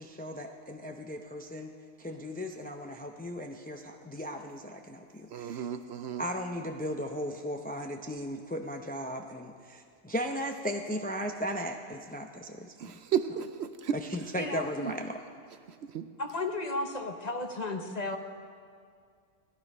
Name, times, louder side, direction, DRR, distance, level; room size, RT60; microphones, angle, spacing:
voice 1, 0.0-1.7 2.0-5.7 6.1-13.0 13.9-15.2, equal, 15° left, 3 dB, 0.3 m, -36 dB
voice 2, 5.3-6.2 12.8-14.0 14.8-14.9 15.9-16.1, right 8 dB, 65° right, 10 dB, 0.8 m, -33 dB
voice 3, 14.4-14.7 16.2-18.2, left 2 dB, 35° left, 4 dB, 0.9 m, -33 dB
17.0 x 11.5 x 5.4 m, 2.2 s
omnidirectional pair, 1.3 m